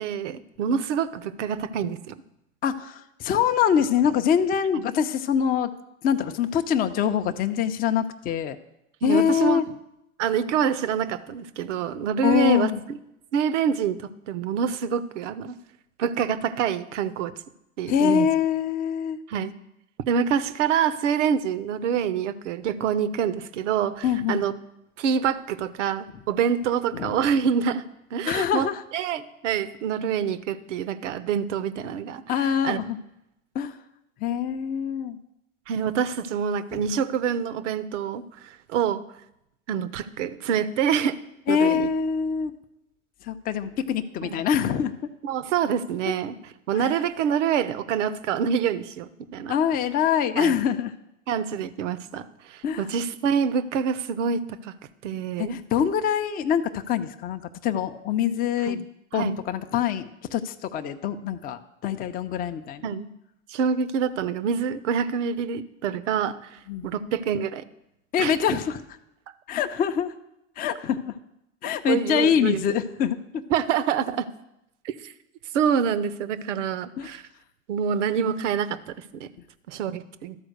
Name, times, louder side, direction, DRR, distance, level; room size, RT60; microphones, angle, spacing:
voice 1, 0.0-2.1 4.7-4.8 9.0-9.6 10.2-12.7 13.3-15.6 16.0-17.3 17.8-18.3 19.3-19.5 20.1-24.5 25.0-27.8 28.1-32.8 35.7-39.0 39.7-41.2 41.5-41.9 44.2-44.4 45.2-46.3 46.7-49.5 50.4-50.5 51.3-54.7 55.0-55.6 58.6-58.8 59.1-59.4 62.8-63.1 63.5-67.6 68.2-68.3 71.9-72.6 73.5-74.3 74.8-75.1 75.5-77.2 77.7-78.8 79.1-79.3 79.7-80.4, right 7 dB, 65° right, 15 dB, 0.7 m, -26 dB
voice 2, 2.6-5.7 6.0-8.6 9.0-9.7 12.2-12.8 17.9-19.2 24.0-24.5 26.9-27.2 28.3-28.8 32.3-33.0 33.5-33.8 34.2-35.2 36.7-36.8 41.5-42.5 43.2-44.9 46.1-46.2 46.7-46.9 49.5-50.9 52.6-52.8 55.4-58.8 59.1-63.0 66.7-66.9 68.1-68.8 69.5-70.1 70.6-71.2 71.6-73.4 77.0-77.1, left 8 dB, 25° left, 7 dB, 0.5 m, -24 dB
12.5 x 4.4 x 6.5 m, 0.85 s
hypercardioid pair, 95°, 38 cm